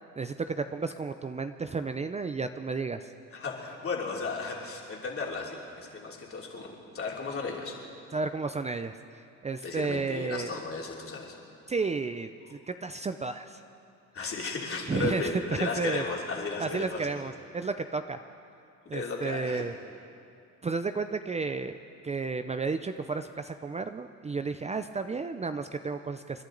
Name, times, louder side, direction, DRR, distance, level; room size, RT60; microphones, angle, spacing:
voice 1, 0.2-3.1 8.1-8.9 9.4-10.6 11.7-13.6 14.9-16.0 16.6-18.2 18.9-19.7 20.6-21.8 22.0-26.4, right 4 dB, 20° right, 9 dB, 0.5 m, -32 dB
voice 2, 3.3-7.8 9.6-11.4 14.1-17.1 18.9-19.7, left 4 dB, 45° left, -2 dB, 3.0 m, -35 dB
29.0 x 11.5 x 3.9 m, 2.5 s
cardioid pair, 90°, 30 cm